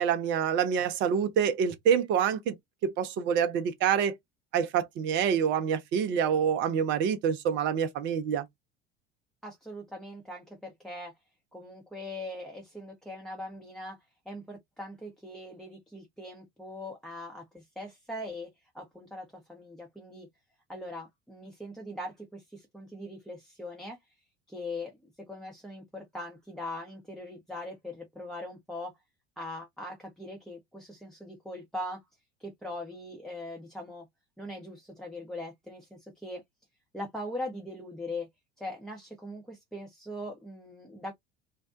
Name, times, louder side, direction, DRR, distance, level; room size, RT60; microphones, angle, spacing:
voice 1, 0.0-2.6 2.8-4.1 4.5-8.4, right 8 dB, 40° right, 0.5 m, -26 dB
voice 2, 9.4-11.1 11.5-14.0 14.3-18.5 18.7-20.3 20.7-24.0 24.5-28.9 29.4-32.0 32.4-34.0 34.4-36.4 36.9-38.3 38.6-41.1, left 1 dB, ahead, 0.7 m, -41 dB
2.5 x 2.1 x 2.4 m
figure-of-eight pair, 70°, 30 cm